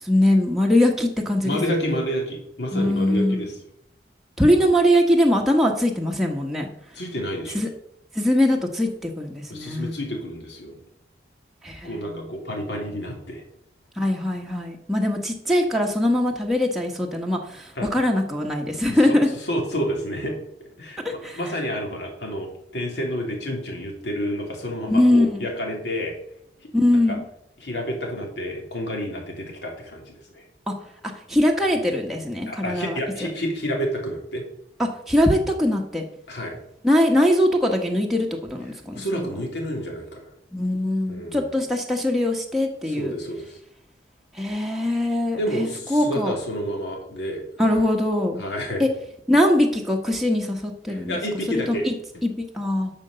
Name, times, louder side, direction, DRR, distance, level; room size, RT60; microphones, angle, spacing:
voice 1, 0.0-1.6 1.8-2.0 2.7-3.5 4.4-6.7 7.5-7.7 8.1-10.0 11.6-12.3 14.0-19.3 21.0-21.4 24.9-25.4 26.7-27.2 30.7-30.8 31.3-33.0 34.8-36.0 36.8-39.4 40.5-43.1 44.3-46.3 47.6-48.4 48.8-48.9 49.3-51.2 51.5-51.9 52.2-52.9, left 1 dB, ahead, -1 dB, 1.1 m, -22 dB
voice 2, 1.4-3.6 6.9-7.6 9.5-10.8 11.8-13.4 17.7-17.9 18.9-19.2 19.4-20.4 20.8-26.1 26.6-26.7 27.1-27.2 27.6-30.4 32.5-34.4 36.3-36.6 38.9-40.3 41.1-41.6 42.8-43.6 45.4-47.8 48.4-48.8 50.9-51.9, equal, 70° left, 0 dB, 3.3 m, -29 dB
11.5 x 5.3 x 6.8 m, 0.76 s
head